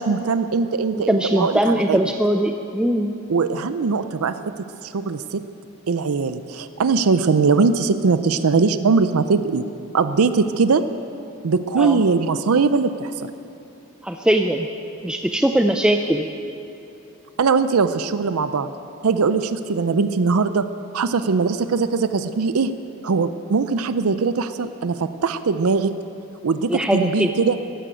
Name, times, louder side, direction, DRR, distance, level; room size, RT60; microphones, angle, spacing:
voice 1, 0.0-2.0 3.3-4.3 4.8-5.4 5.9-9.6 9.9-10.8 11.4-13.3 17.4-18.7 19.0-20.7 20.9-22.7 23.0-25.9 26.4-27.6, right 4 dB, 80° right, 11 dB, 0.5 m, -20 dB
voice 2, 0.9-3.1 11.8-12.0 14.0-14.7 15.0-16.3 26.7-27.3, right 1 dB, 5° right, 4 dB, 0.4 m, -20 dB
14.5 x 11.0 x 9.0 m, 2.8 s
head